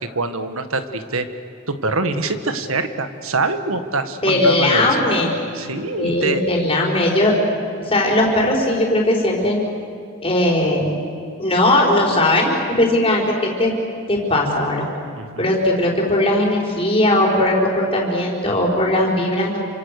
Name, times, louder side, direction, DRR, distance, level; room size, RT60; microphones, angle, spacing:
voice 1, 0.1-1.3 1.7-4.9 5.5-6.4 15.2-15.5, right 3 dB, 75° right, 9 dB, 1.7 m, -24 dB
voice 2, 4.2-5.4 6.0-7.3 7.8-9.6 10.2-10.9 11.4-13.7 14.1-14.9 15.4-19.6, left 1 dB, 25° left, -1 dB, 4.6 m, -18 dB
28.5 x 25.5 x 6.7 m, 2.4 s
head